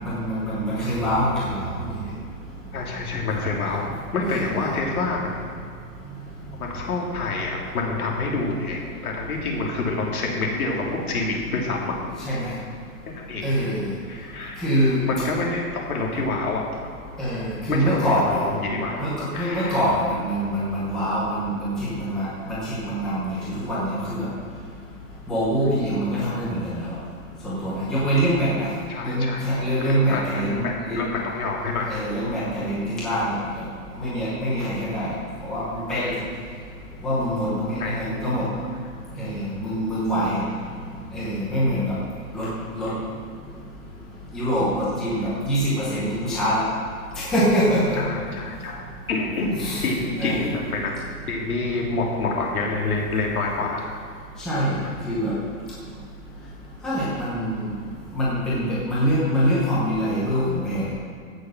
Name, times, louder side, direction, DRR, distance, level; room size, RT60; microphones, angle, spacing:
voice 1, 0.0-1.9 4.4-4.8 12.3-12.5 13.4-13.9 14.6-15.0 17.2-18.4 19.0-24.3 25.3-27.0 27.4-28.7 29.0-31.0 31.9-33.6 34.0-35.1 35.4-36.1 37.0-38.5 39.2-40.4 41.1-41.9 42.3-42.5 42.8-42.9 44.3-46.6 47.1-48.0 49.6-49.9 50.2-50.4 54.4-55.3 56.8-57.7 58.1-60.9, equal, ahead, -9 dB, 0.7 m, -24 dB
voice 2, 2.7-5.3 6.5-11.9 13.3-13.5 14.1-16.8 17.7-19.0 19.3-19.8 28.9-29.4 29.8-31.9 36.0-36.1 37.8-37.9 47.9-48.8 49.1-50.9 51.3-53.8, left 3 dB, 70° left, -1 dB, 3.1 m, -27 dB
15.5 x 6.5 x 6.2 m, 2.3 s
hypercardioid pair, 170°, 46 cm